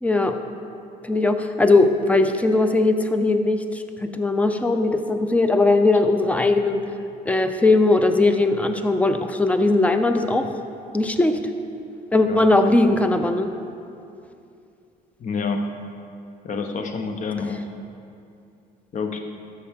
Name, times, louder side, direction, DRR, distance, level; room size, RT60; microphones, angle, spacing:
voice 1, 0.0-0.4 1.0-6.8 7.3-10.5 10.9-11.4 12.1-13.5, left 2 dB, 10° left, 7 dB, 0.6 m, -19 dB
voice 2, 15.2-15.7 16.4-17.7 18.9-19.2, left 4 dB, 45° left, 5 dB, 0.9 m, -27 dB
13.0 x 6.8 x 3.6 m, 2.5 s
cardioid pair, 110°, 17 cm